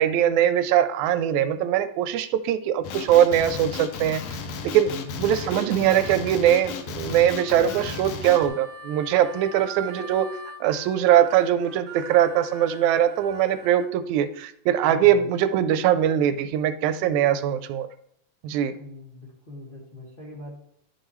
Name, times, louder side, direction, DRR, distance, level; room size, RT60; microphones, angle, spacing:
voice 1, 0.0-4.2 4.6-4.9 5.2-10.3 10.6-17.9 18.4-18.7, right 10 dB, 85° right, 12 dB, 1.9 m, -21 dB
Male speech man speaking, 2.8-8.5, left 5 dB, 70° left, 1.9 m, -34 dB
voice 2, 4.8-5.3 14.8-15.3 18.8-20.6, left 2 dB, 25° left, -5 dB, 1.4 m, -41 dB
Harmonica, 7.3-13.9, right 3 dB, 65° right, 1.8 m, -42 dB
11.5 x 6.3 x 3.1 m, 0.69 s
omnidirectional pair, 3.3 m